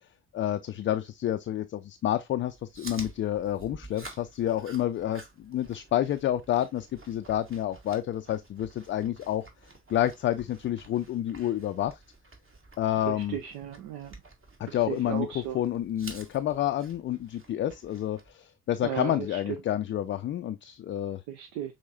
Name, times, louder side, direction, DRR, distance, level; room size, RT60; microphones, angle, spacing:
voice 1, 0.3-9.5 9.9-12.0 12.8-13.4 14.6-21.2, left 12 dB, 30° left, 0.4 m, -29 dB
Chewing mastication, 2.4-18.3, right 2 dB, 30° right, 1.6 m, -50 dB
voice 2, 13.1-14.1 14.7-15.6 18.8-19.4 21.3-21.7, right 9 dB, 60° right, 0.7 m, -35 dB
6.3 x 3.0 x 2.5 m
figure-of-eight pair, 50°, 41 cm